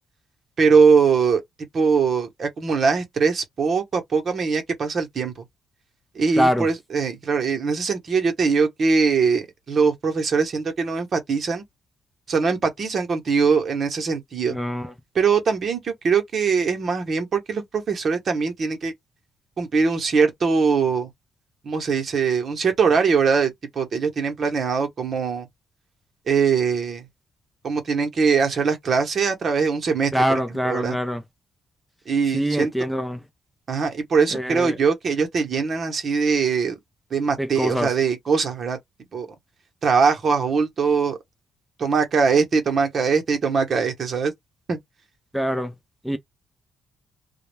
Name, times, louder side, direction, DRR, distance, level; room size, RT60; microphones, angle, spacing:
voice 1, 0.6-1.4 1.7-5.3 6.1-11.6 12.3-14.6 15.1-18.9 19.6-21.1 21.6-25.5 26.3-27.0 27.6-31.0 32.1-32.7 33.7-36.8 37.1-38.8 39.1-39.3 39.8-41.2 41.8-44.3 44.7-44.8, right 5 dB, 50° right, 0.8 m, -21 dB
voice 2, 6.4-6.7 14.5-14.9 30.1-31.2 32.3-33.2 34.3-34.8 37.4-37.9 45.3-45.7 46.0-46.2, equal, ahead, 0.4 m, -24 dB
2.3 x 2.1 x 3.1 m
cardioid pair, 90°, 0 cm